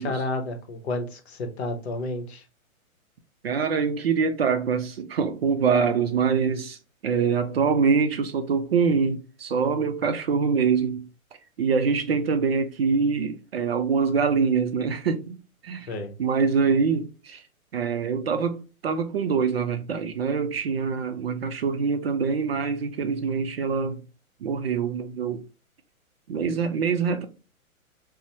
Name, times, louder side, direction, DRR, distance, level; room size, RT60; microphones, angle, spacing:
voice 1, 0.0-2.4 15.9-16.1, left 2 dB, 50° left, 0.8 m, -31 dB
voice 2, 3.4-11.1 11.6-15.4 15.6-15.9 16.2-17.4 17.7-24.0 24.4-25.4 26.3-27.3, right 5 dB, 45° right, 0.4 m, -24 dB
4.0 x 2.0 x 2.7 m
figure-of-eight pair, 115°, 42 cm